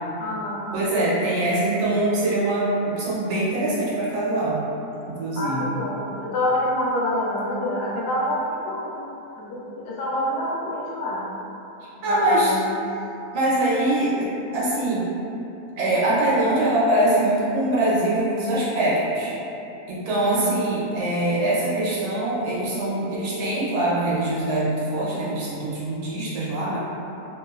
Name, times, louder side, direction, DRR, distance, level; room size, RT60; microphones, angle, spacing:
voice 1, 0.2-0.8 5.4-9.0 9.4-11.3 12.0-12.7 20.2-20.5, left 1 dB, 90° left, -5 dB, 1.1 m, -27 dB
voice 2, 0.7-4.6 5.0-5.7 12.0-12.5 13.3-15.1 15.8-19.3 19.9-26.8, right 1 dB, 85° right, -7 dB, 1.2 m, -23 dB
3.0 x 2.0 x 2.3 m, 2.9 s
omnidirectional pair, 1.6 m